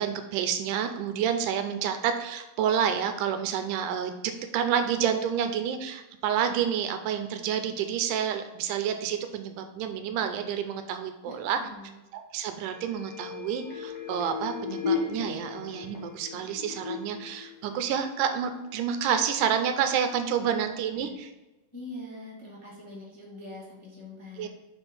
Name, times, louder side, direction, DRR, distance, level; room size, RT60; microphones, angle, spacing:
voice 1, 0.0-4.1 4.5-11.6 12.1-21.3 24.4-24.5, right 8 dB, 80° right, 7 dB, 2.0 m, -29 dB
voice 2, 11.2-11.9 21.0-21.2 21.7-24.5, left 2 dB, 15° left, -6 dB, 1.1 m, -43 dB
sound 1, 12.7-18.3 18.7-18.8, left 6 dB, 55° left, 2.4 m, -36 dB
6.0 x 4.4 x 5.2 m, 1.1 s
omnidirectional pair, 3.8 m